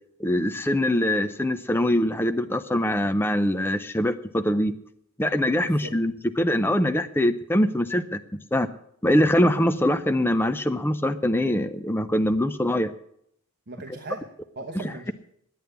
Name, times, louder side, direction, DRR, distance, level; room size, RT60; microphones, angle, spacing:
voice 1, 0.2-4.7 5.2-8.2 8.5-8.7 9.0-12.9 14.8-15.1, left 1 dB, 10° left, 9 dB, 0.5 m, -23 dB
voice 2, 5.6-6.0 13.7-15.1, right 2 dB, 50° right, 4 dB, 0.9 m, -38 dB
11.0 x 8.6 x 9.3 m, 0.72 s
head